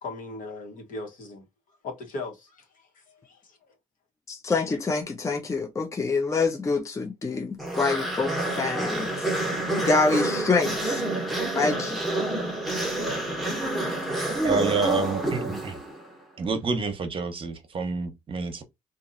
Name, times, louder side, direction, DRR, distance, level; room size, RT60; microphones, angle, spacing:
voice 1, 0.0-1.4 1.8-2.7 2.9-3.7, left 3 dB, 70° left, 1.2 m, -38 dB
voice 2, 4.3-9.4 9.9-11.0 11.5-12.0 13.9-14.2, left 4 dB, 20° left, 0.6 m, -26 dB
sound 1, 7.6-16.1, right 1 dB, ahead, 1.0 m, -28 dB
voice 3, 14.4-15.8 16.4-18.6, right 4 dB, 40° right, 0.8 m, -28 dB
2.9 x 2.5 x 2.5 m
cardioid pair, 95°, 14 cm